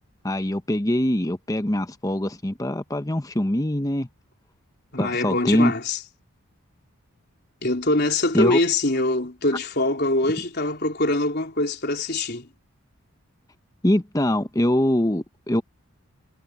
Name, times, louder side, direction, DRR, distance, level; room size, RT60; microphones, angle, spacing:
voice 1, 0.2-4.1 5.0-5.7 8.3-8.6 13.8-15.6, left 1 dB, 15° left, 0.9 m, -23 dB
voice 2, 4.9-6.0 7.6-12.5, left 2 dB, 45° left, 4.0 m, -23 dB
head